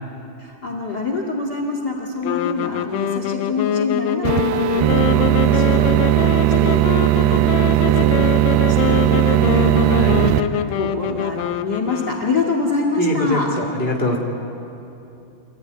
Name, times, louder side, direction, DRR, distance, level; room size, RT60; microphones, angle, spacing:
voice 1, 0.4-6.8 7.2-8.3 8.7-10.5 10.7-13.5, left 3 dB, 40° left, 2 dB, 1.6 m, -26 dB
sound 1, 2.2-12.6, left 10 dB, 75° left, 2.1 m, -24 dB
sound 2, 4.3-10.4, right 14 dB, 80° right, 2.4 m, -17 dB
voice 2, 9.8-10.2 13.0-14.2, equal, 25° right, 1 dB, 1.1 m, -23 dB
26.0 x 15.5 x 9.5 m, 2.8 s
omnidirectional pair, 4.6 m